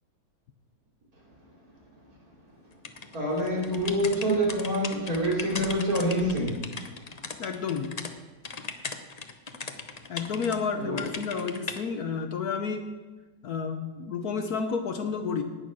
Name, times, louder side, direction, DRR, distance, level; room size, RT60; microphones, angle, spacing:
sound 1, 2.8-8.1 8.4-10.6 11.0-11.8, left 4 dB, 85° left, 0.3 m, -38 dB
voice 1, 3.1-6.6 10.8-11.1, equal, 50° right, -3 dB, 3.6 m, -26 dB
voice 2, 7.4-8.0 10.1-12.9 13.4-15.4, left 5 dB, 60° left, 6 dB, 1.2 m, -31 dB
18.0 x 6.5 x 6.2 m, 1.3 s
omnidirectional pair, 2.0 m